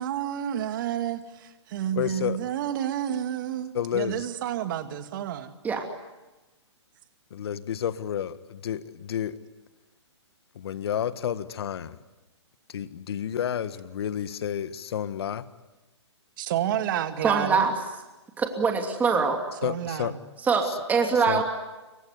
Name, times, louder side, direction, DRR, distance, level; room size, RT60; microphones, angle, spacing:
voice 1, 0.0-5.5 16.4-17.7 19.6-20.2, right 11 dB, 45° right, 8 dB, 2.2 m, -30 dB
voice 2, 1.9-2.4 3.7-4.3 7.3-9.4 10.5-12.0 12.7-15.4 19.6-20.1 21.3-21.4, left 9 dB, 60° left, 12 dB, 1.7 m, -30 dB
voice 3, 17.2-17.7 18.4-19.4 20.4-21.4, right 5 dB, 10° right, 3 dB, 2.7 m, -23 dB
26.0 x 24.0 x 9.5 m, 1.1 s
hypercardioid pair, 145°, 15 cm